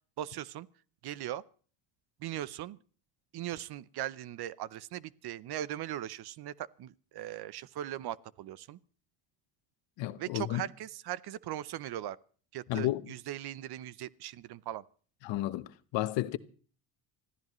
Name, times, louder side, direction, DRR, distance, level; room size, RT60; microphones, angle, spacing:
voice 1, 0.2-0.7 1.0-1.4 2.2-2.8 3.3-8.8 10.2-12.2 12.5-14.8, right 12 dB, 55° right, 0.8 m, -39 dB
voice 2, 10.0-10.6 12.7-13.0 15.2-16.4, left 16 dB, 65° left, 1.1 m, -32 dB
25.0 x 15.0 x 3.1 m
cardioid pair, 100°, 47 cm